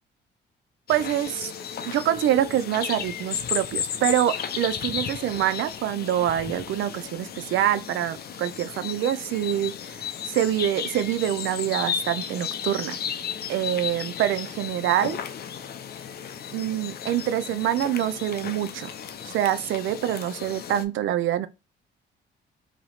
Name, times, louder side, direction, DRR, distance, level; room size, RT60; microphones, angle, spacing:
sound 1, 0.9-20.8, left 8 dB, 55° left, 0.5 m, -34 dB
voice 1, 0.9-1.5 1.8-9.7 10.2-13.0 13.5-15.2 16.5-18.9 19.2-21.5, right 11 dB, 75° right, 0.5 m, -25 dB
2.9 x 2.8 x 4.2 m
cardioid pair, 90°, 20 cm